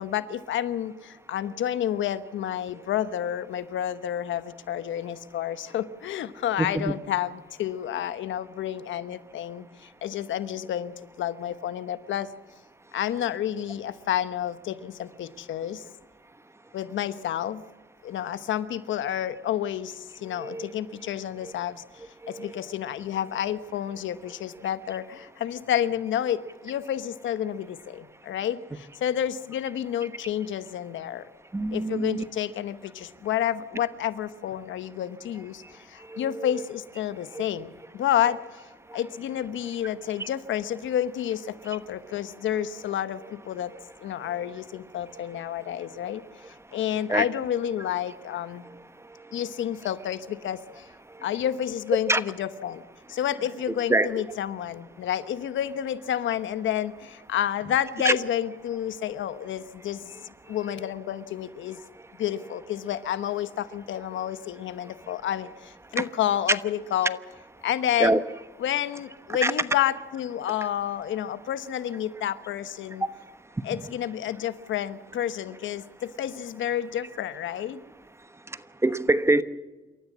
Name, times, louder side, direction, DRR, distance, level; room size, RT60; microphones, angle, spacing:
voice 1, 0.0-12.3 12.9-15.8 16.7-17.6 18.0-31.3 31.7-38.6 38.9-43.7 44.0-48.6 49.3-50.9 51.2-52.8 53.1-61.8 62.2-67.2 67.6-68.2 68.6-73.0 73.6-77.8, left 10 dB, 75° left, 13 dB, 1.1 m, -30 dB
voice 2, 6.6-6.9 20.3-20.7 21.4-21.5 22.2-22.6 31.5-32.2 36.1-36.6 37.3-37.4 38.9-39.0 40.2-40.3 43.7-43.8 44.2-44.4 47.1-47.2 49.3-49.4 52.1-52.2 53.9-54.2 58.0-58.2 60.8-60.9 66.0-66.1 68.0-68.2 69.4-69.5 73.0-73.1 78.8-79.4, right 2 dB, 15° right, 12 dB, 1.1 m, -25 dB
27.5 x 14.0 x 7.4 m, 1.2 s
cardioid pair, 90°, 20 cm